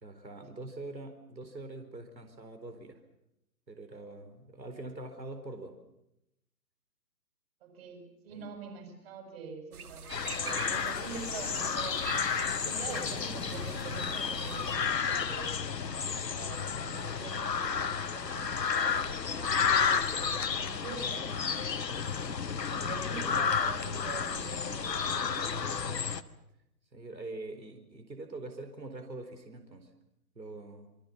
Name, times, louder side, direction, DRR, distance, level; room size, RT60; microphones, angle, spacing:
voice 1, 0.0-3.0 3.7-5.7 8.3-8.5 26.9-29.9 30.3-30.9, right 2 dB, 85° right, 7 dB, 4.3 m, -44 dB
voice 2, 7.6-12.0 12.5-15.6 16.2-19.5 20.0-21.8 22.6-26.1, right 5 dB, 35° right, 5 dB, 6.2 m, -45 dB
sound 1, 9.7-14.8, right 6 dB, 60° right, 2.5 m, -46 dB
sound 2, 10.1-26.2, left 6 dB, 75° left, 1.6 m, -32 dB
27.5 x 24.0 x 7.1 m, 0.83 s
figure-of-eight pair, 145°, 50 cm